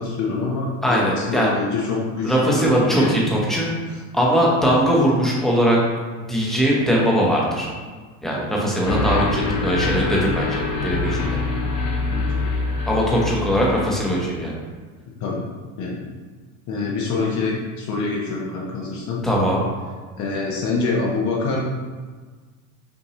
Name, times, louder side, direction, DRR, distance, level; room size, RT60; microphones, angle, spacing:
voice 1, 0.0-3.3 12.1-12.5 15.2-15.4 15.8-16.0 16.7-19.2 20.2-21.6, left 4 dB, 50° left, -3 dB, 0.8 m, -26 dB
voice 2, 0.8-1.5 2.2-3.7 4.1-5.8 6.3-7.7 8.2-11.4 12.9-14.5 19.2-19.6, equal, ahead, -4 dB, 0.9 m, -20 dB
sound 1, 8.8-14.2, left 3 dB, 80° left, 1.1 m, -25 dB
5.7 x 2.6 x 3.1 m, 1.4 s
supercardioid pair, 125°, 37 cm